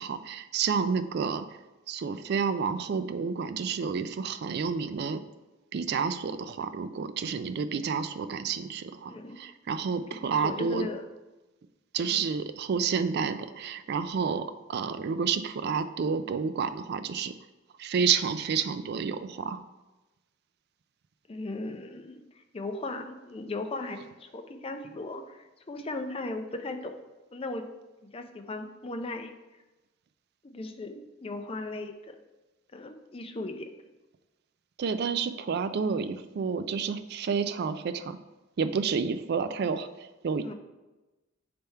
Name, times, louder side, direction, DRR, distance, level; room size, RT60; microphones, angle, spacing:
voice 1, 0.0-1.5 1.9-5.2 5.7-10.9 11.9-17.3 17.8-19.6 34.8-38.2 38.6-40.5, right 6 dB, 55° right, 11 dB, 0.3 m, -30 dB
voice 2, 10.1-11.1 12.0-12.2 21.3-22.2 22.5-26.9 27.3-27.7 28.0-29.3 30.4-32.2 32.7-33.7 40.4-40.5, left 2 dB, 30° left, 6 dB, 0.5 m, -37 dB
6.8 x 3.4 x 4.4 m, 1.1 s
head